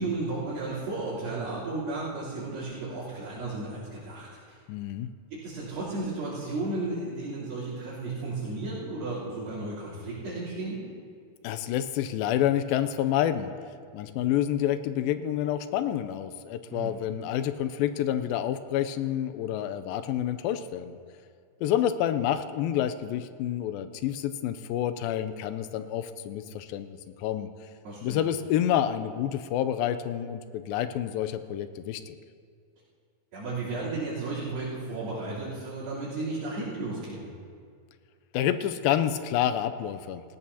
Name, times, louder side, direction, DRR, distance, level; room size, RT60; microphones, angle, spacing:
voice 1, 0.0-4.6 5.3-10.8 16.7-16.9 27.8-28.2 33.3-37.2, right 2 dB, 75° right, -13 dB, 5.3 m, -34 dB
voice 2, 4.7-5.1 11.4-13.5 13.9-21.0 21.6-27.5 28.0-32.2 38.3-40.2, left 11 dB, 85° left, 11 dB, 2.3 m, -28 dB
18.5 x 17.5 x 2.8 m, 2.2 s
omnidirectional pair, 4.2 m